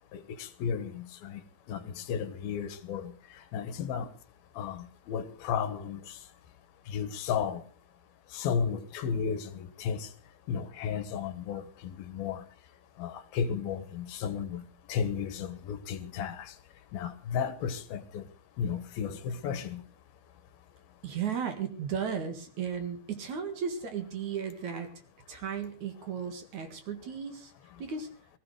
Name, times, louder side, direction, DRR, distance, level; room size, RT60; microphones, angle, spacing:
voice 1, 0.1-1.4 1.7-4.1 4.6-6.2 6.9-7.6 8.3-10.1 10.5-12.4 13.0-16.5 16.9-18.2 18.6-19.8, left 7 dB, 80° left, 3.1 m, -34 dB
voice 2, 21.0-24.9 25.3-27.5 27.8-28.1, right 7 dB, 55° right, 2.9 m, -35 dB
19.5 x 14.5 x 4.9 m
omnidirectional pair, 4.3 m